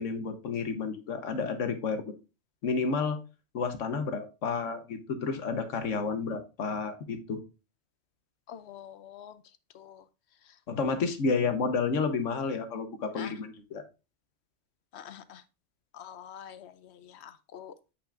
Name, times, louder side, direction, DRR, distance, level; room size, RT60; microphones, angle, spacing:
voice 1, 0.0-2.1 2.6-3.2 3.5-7.4 10.7-13.8, left 4 dB, 90° left, 1.3 m, -31 dB
voice 2, 8.5-9.3 9.7-10.0 13.2-13.3 14.9-15.4 16.0-16.7 17.2-17.7, left 9 dB, 65° left, 0.9 m, -45 dB
8.4 x 5.7 x 2.5 m
omnidirectional pair, 1.2 m